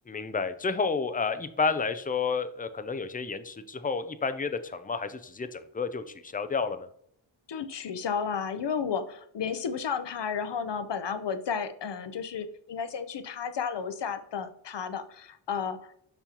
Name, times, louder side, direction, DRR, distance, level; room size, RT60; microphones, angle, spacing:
voice 1, 0.1-6.9, left 5 dB, 20° left, 11 dB, 0.4 m, -30 dB
voice 2, 7.5-15.9, left 6 dB, 60° left, 10 dB, 0.7 m, -33 dB
6.9 x 5.4 x 2.9 m, 0.68 s
wide cardioid pair, 110°, 49 cm